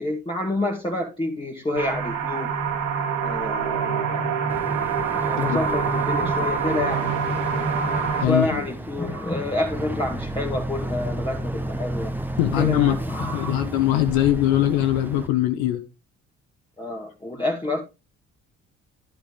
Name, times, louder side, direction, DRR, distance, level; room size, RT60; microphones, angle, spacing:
voice 1, 0.0-2.5 3.2-4.6 5.2-7.1 8.2-12.1 12.6-13.7 16.8-17.8, left 2 dB, 10° left, 2.1 m, -28 dB
sound 1, 1.7-8.2, right 5 dB, 60° right, 2.8 m, -25 dB
Boat Water vehicle, 4.5-15.3, right 1 dB, 5° right, 1.4 m, -33 dB
voice 2, 8.2-8.6 12.4-15.8, left 13 dB, 60° left, 1.2 m, -22 dB
11.5 x 5.1 x 5.0 m
figure-of-eight pair, 50°, 41 cm